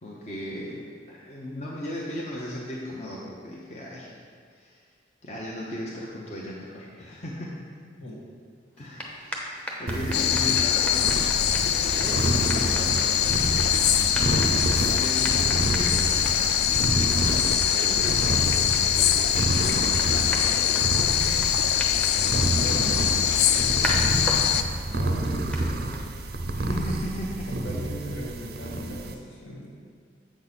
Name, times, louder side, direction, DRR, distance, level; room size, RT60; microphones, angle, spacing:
voice 1, 0.0-4.1 4.5-4.9 5.2-7.6 8.8-9.5 9.8-13.5 14.5-16.5 17.7-21.3 26.5-27.5, left 1 dB, 35° left, -5 dB, 0.8 m, -37 dB
sound 1, 8.7-26.5, equal, 5° left, 0.7 m, -38 dB
sound 2, 9.9-29.1, right 2 dB, 55° right, 0.5 m, -29 dB
sound 3, 10.1-24.6, left 9 dB, 55° left, 0.3 m, -23 dB
voice 2, 22.5-26.1 27.5-29.7, equal, 75° left, -4 dB, 2.0 m, -38 dB
7.7 x 6.1 x 4.1 m, 2.1 s
head